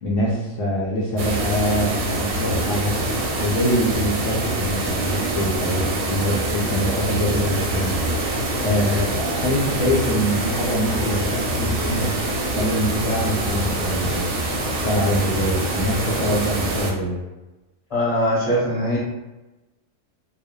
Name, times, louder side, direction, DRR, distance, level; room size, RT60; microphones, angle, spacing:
voice 1, 0.0-3.0 3.4-12.2 12.5-14.4 14.7-17.2, equal, 80° left, -4 dB, 0.9 m, -24 dB
sound 1, 1.2-16.9, right 1 dB, 65° right, 0.8 m, -25 dB
voice 2, 17.9-19.0, equal, 30° left, -9 dB, 1.3 m, -21 dB
2.6 x 2.1 x 2.2 m, 1.1 s
omnidirectional pair, 1.3 m